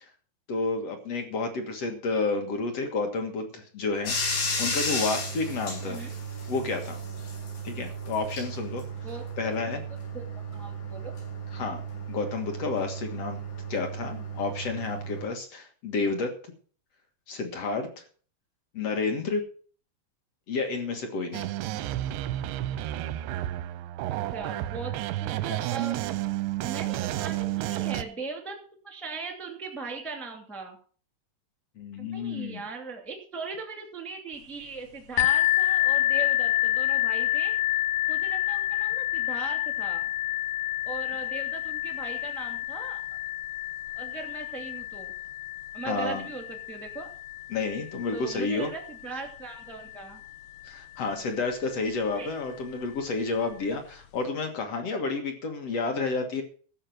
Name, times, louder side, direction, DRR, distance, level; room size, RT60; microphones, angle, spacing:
voice 1, 0.5-4.1 4.6-6.0 6.5-7.0 7.6-8.8 9.4-9.8 11.5-11.8 12.1-13.4 13.7-16.3 17.3-18.0 18.7-19.4 20.5-21.5 31.8-32.6 45.9-46.2 47.5-48.7 50.6-56.4, left 4 dB, 55° left, 5 dB, 1.7 m, -30 dB
Bathtub (filling or washing), 4.1-15.2, right 1 dB, 90° left, 6.9 m, -34 dB
voice 2, 9.0-9.5 10.1-11.1 24.1-24.9 25.2-26.0 26.6-28.6 28.8-30.8 32.0-37.5 38.1-40.1 40.8-43.2 43.9-45.1 45.7-47.1 48.1-50.2 52.1-52.3, right 4 dB, ahead, 3 dB, 0.8 m, -39 dB
sound 1, 21.3-28.0, right 14 dB, 85° right, 3.0 m, -31 dB
sound 2, 35.2-50.7 51.5-51.6 52.1-52.2, left 15 dB, 75° left, 2.6 m, -29 dB
14.0 x 5.7 x 7.7 m, 0.42 s
omnidirectional pair, 5.0 m